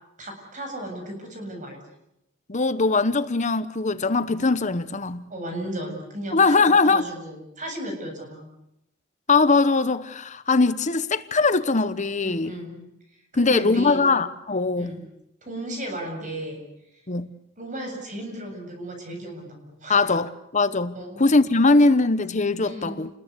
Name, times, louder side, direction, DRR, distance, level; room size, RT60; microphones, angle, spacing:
voice 1, 0.2-1.8 5.3-8.4 12.2-12.8 13.3-14.0 14.8-15.0 15.4-16.6 17.6-20.2 20.9-21.2 22.6-23.0, right 1 dB, 40° right, 7.5 m, -35 dB
voice 2, 2.5-5.2 6.3-7.0 9.3-12.5 13.4-15.0 17.1-17.3 19.9-23.1, left 3 dB, 35° left, 1.1 m, -21 dB
29.5 x 21.0 x 8.4 m
head